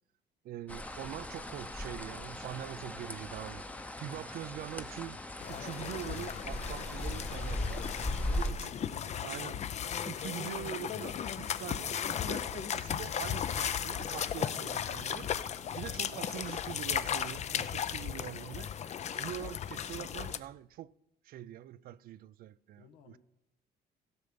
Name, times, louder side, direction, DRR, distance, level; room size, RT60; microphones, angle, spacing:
voice 1, 0.4-3.6 4.0-5.2 5.5-7.9 8.3-8.7 9.2-9.6 10.1-15.3 15.8-20.9 21.2-23.2, right 12 dB, 60° right, 0.4 m, -44 dB
sound 1, 0.7-8.5, left 1 dB, 10° left, 0.8 m, -39 dB
voice 2, 2.9-4.2 8.0-9.5 14.3-14.9 15.3-16.4 22.7-23.2, left 7 dB, 85° left, 1.4 m, -57 dB
sound 2, 5.4-20.4, left 8 dB, 40° left, 0.6 m, -36 dB
16.5 x 6.7 x 5.2 m
cardioid pair, 110°, 17 cm